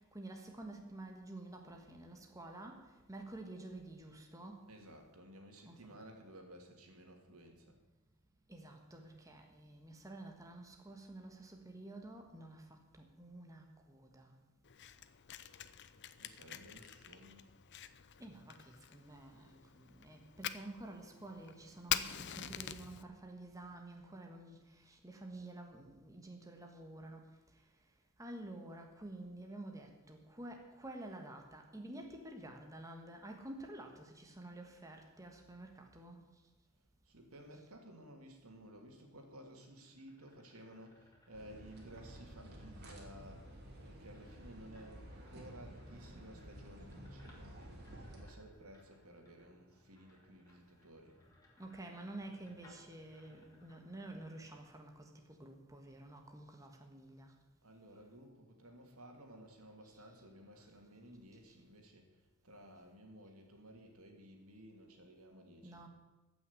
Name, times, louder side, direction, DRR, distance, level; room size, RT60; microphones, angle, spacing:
voice 1, 0.0-4.7 5.6-6.0 8.5-14.4 18.2-27.6 28.2-36.2 37.5-37.6 51.6-57.3 59.8-60.1 60.6-60.7 61.5-61.6 65.6-65.9, right 1 dB, 15° right, 3 dB, 1.5 m, -50 dB
voice 2, 4.7-7.8 16.2-17.5 37.0-51.2 57.6-65.9, right 1 dB, 80° right, 3 dB, 2.6 m, -56 dB
Fire, 14.6-23.0, left 10 dB, 55° left, 0.7 m, -45 dB
sound 1, 39.5-54.5, left 1 dB, 15° left, 3.0 m, -67 dB
sound 2, 41.3-48.2, right 1 dB, 50° right, 3.0 m, -52 dB
15.0 x 6.2 x 9.6 m, 1.1 s
head